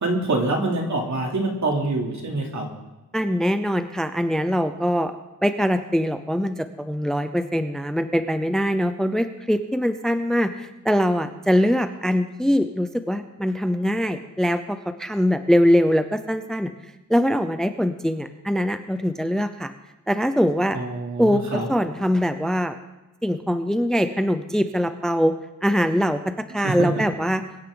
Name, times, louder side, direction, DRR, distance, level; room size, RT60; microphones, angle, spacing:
voice 1, 0.0-2.7 20.7-21.7 26.6-26.9, right 2 dB, 65° right, -1 dB, 3.0 m, -25 dB
voice 2, 3.1-5.1 5.4-16.7 17.1-19.7 20.1-20.8 21.2-22.8 23.2-25.3 25.6-27.4, equal, ahead, 9 dB, 0.5 m, -22 dB
23.0 x 10.5 x 3.8 m, 1.1 s
wide cardioid pair, 165°, 31 cm